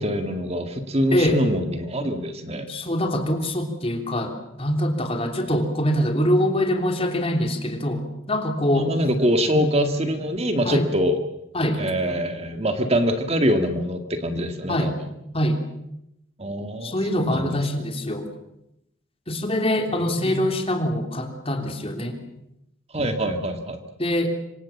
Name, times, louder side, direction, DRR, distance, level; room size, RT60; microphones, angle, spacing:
voice 1, 0.0-2.7 8.8-11.2 11.8-15.1 16.4-17.6 20.2-20.6 22.9-23.8, equal, 30° right, 7 dB, 1.9 m, -24 dB
voice 2, 2.7-8.9 9.5-9.7 10.6-10.9 11.5-11.8 14.7-14.9 15.3-15.6 16.8-18.3 19.3-22.2 24.0-24.3, left 1 dB, 30° left, 4 dB, 3.4 m, -24 dB
27.0 x 25.0 x 7.3 m, 0.83 s
head